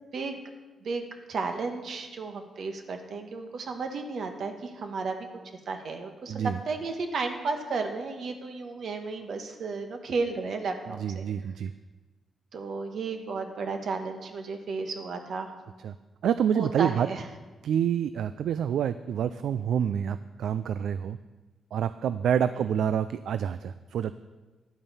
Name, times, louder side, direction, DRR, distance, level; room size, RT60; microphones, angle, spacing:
voice 1, 0.8-5.3 5.7-11.2 12.5-15.5 16.5-17.2 22.6-22.7, right 4 dB, 60° right, 5 dB, 1.3 m, -33 dB
voice 2, 6.3-6.6 11.0-11.7 15.8-15.9 16.2-17.1 17.6-21.2 21.7-24.1, right 8 dB, 75° right, 13 dB, 0.3 m, -27 dB
10.5 x 8.9 x 5.5 m, 1.2 s
wide cardioid pair, 140°, 0 cm